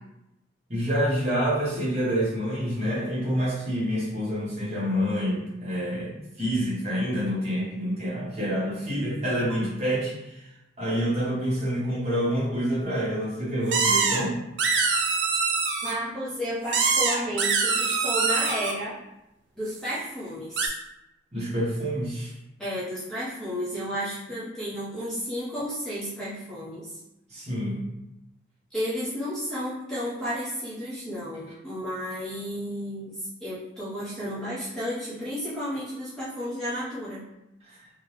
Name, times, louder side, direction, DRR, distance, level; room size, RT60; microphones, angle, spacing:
voice 1, 0.7-10.5 10.8-14.4 21.3-22.3 27.3-27.8 37.6-37.8, equal, 35° right, -8 dB, 1.3 m, -27 dB
sound 1, 13.7-14.2 14.6-15.9 16.7-18.7 20.6-20.7, right 4 dB, 70° right, 0.5 m, -24 dB
voice 2, 15.8-19.0 19.5-20.7 22.6-26.9 28.7-37.2, equal, 5° left, -12 dB, 1.0 m, -32 dB
3.7 x 2.3 x 3.1 m, 0.90 s
head